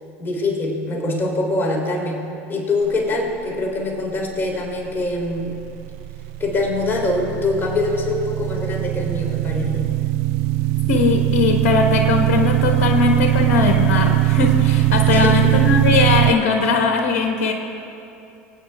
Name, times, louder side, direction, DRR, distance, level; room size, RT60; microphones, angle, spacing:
voice 1, 0.2-5.5 6.4-9.9 15.0-15.5, left 2 dB, 30° left, -1 dB, 3.4 m, -24 dB
sound 1, 5.5-16.3, right 17 dB, 65° right, 0.4 m, -20 dB
voice 2, 10.9-17.5, left 4 dB, 65° left, 3 dB, 1.3 m, -19 dB
24.5 x 9.2 x 3.5 m, 2.7 s
hypercardioid pair, 85°, 8 cm